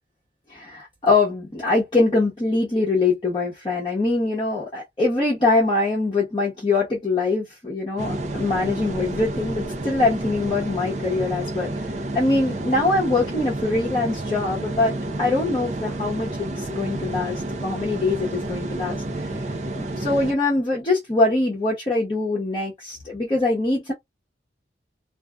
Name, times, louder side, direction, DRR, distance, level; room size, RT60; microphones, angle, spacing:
voice 1, 0.5-11.7 12.1-19.3 19.7-23.9, left 2 dB, 25° left, 0.9 m, -23 dB
sound 1, 8.0-20.3, right 1 dB, 40° right, 0.5 m, -30 dB
2.7 x 2.4 x 2.3 m
head